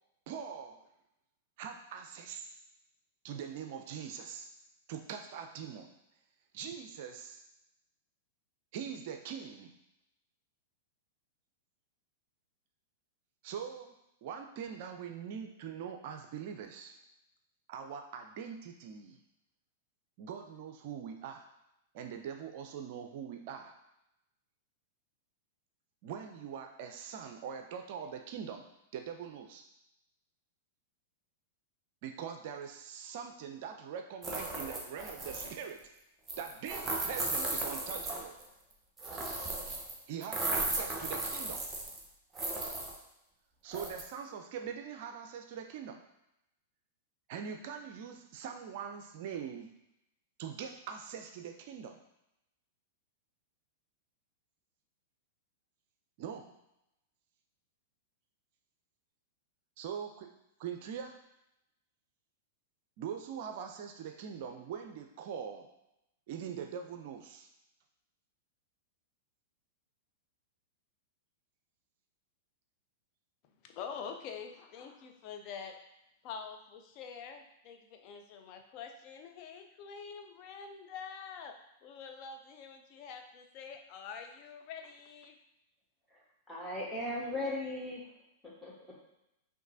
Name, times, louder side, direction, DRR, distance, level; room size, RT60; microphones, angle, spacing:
voice 1, 0.3-0.9 1.6-2.6 3.2-4.5 4.9-5.9 6.5-7.4 8.7-9.8 13.4-17.0 17.7-19.2 20.2-21.5 21.9-23.8 26.0-29.6 32.0-35.9 36.4-38.4 40.1-41.7 43.6-46.0 47.3-49.7 50.4-52.0 56.2-56.6 59.8-60.3 60.6-61.2 63.0-65.7 66.3-67.5, right 7 dB, 45° right, 5 dB, 0.4 m, -42 dB
sound 1, 34.2-35.6 36.3-38.4 39.0-39.9 40.2-42.0 42.4-43.0 43.7-44.0, right 2 dB, 15° right, 0.8 m, -36 dB
voice 2, 73.6-75.8 76.2-81.5 81.8-85.4, left 6 dB, 40° left, 5 dB, 0.5 m, -46 dB
voice 3, 86.5-88.0 88.4-88.7, left 1 dB, 5° left, -4 dB, 1.2 m, -37 dB
5.8 x 2.7 x 2.6 m, 0.86 s
figure-of-eight pair, 95°, 0 cm